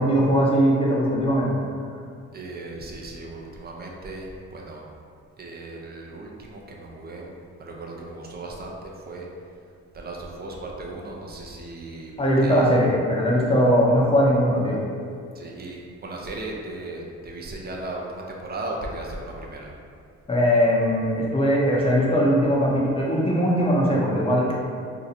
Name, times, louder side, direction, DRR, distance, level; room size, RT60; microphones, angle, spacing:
voice 1, 0.0-1.5 12.2-14.8 20.3-24.5, equal, 20° left, -4 dB, 0.7 m, -20 dB
voice 2, 2.3-4.8 5.4-9.3 9.9-12.1 12.4-12.6 15.3-19.7, right 2 dB, 30° right, -1 dB, 0.6 m, -36 dB
2.8 x 2.4 x 4.0 m, 2.3 s
cardioid pair, 90°, 30 cm